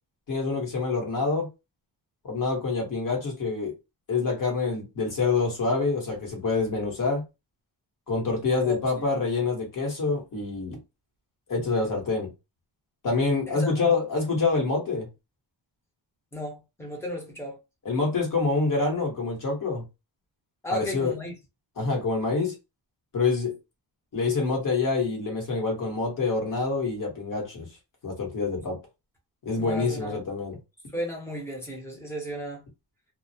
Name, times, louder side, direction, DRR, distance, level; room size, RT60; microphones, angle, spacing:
voice 1, 0.3-1.5 2.2-3.7 4.1-7.2 8.1-10.8 11.5-12.3 13.0-15.1 17.8-19.8 20.7-21.1 21.8-22.5 23.1-23.6 24.1-27.7 28.0-28.8 29.4-30.6, left 4 dB, 45° left, 1.1 m, -26 dB
voice 2, 8.6-9.1 13.5-13.8 16.3-17.6 20.6-21.4 29.6-30.2 30.9-32.6, equal, 5° left, 0.7 m, -35 dB
2.3 x 2.0 x 2.7 m
wide cardioid pair, 155°, 44 cm